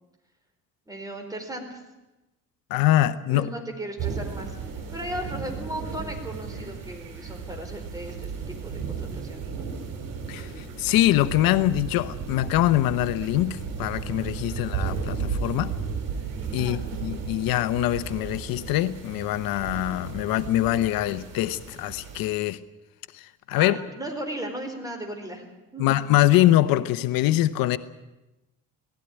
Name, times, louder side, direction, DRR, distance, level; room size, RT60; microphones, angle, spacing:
voice 1, 0.9-1.8 3.3-9.7 16.6-16.8 23.6-26.1, right 1 dB, 10° right, 4 dB, 4.4 m, -36 dB
voice 2, 2.7-3.5 10.3-15.7 16.5-22.6 23.1-23.8 25.8-27.8, left 14 dB, 85° left, 13 dB, 1.0 m, -23 dB
sound 1, 4.0-22.3, right 6 dB, 70° right, 5.5 m, -34 dB
18.5 x 16.0 x 10.0 m, 1.0 s
cardioid pair, 120°, 34 cm